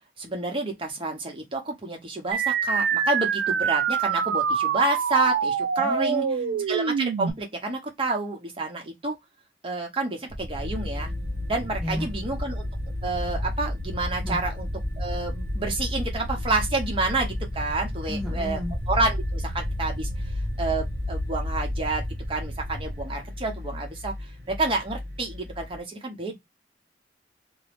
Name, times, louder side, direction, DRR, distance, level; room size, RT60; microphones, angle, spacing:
voice 1, 0.2-6.3 6.7-9.2 9.6-11.1 11.5-12.7 13.0-14.7 15.0-18.6 18.9-20.1 20.6-22.0 22.3-24.1 24.5-26.4, right 2 dB, 30° right, 0.8 m, -29 dB
sound 1, 2.3-7.3, right 7 dB, 75° right, 0.3 m, -25 dB
voice 2, 5.8-6.7 11.8-12.1 14.2-14.4 18.1-18.7, equal, ahead, 0.4 m, -33 dB
sound 2, 10.3-23.0, equal, 65° left, 0.8 m, -34 dB
sound 3, 10.5-25.8, left 1 dB, 50° right, 1.1 m, -34 dB
2.7 x 2.0 x 3.0 m
head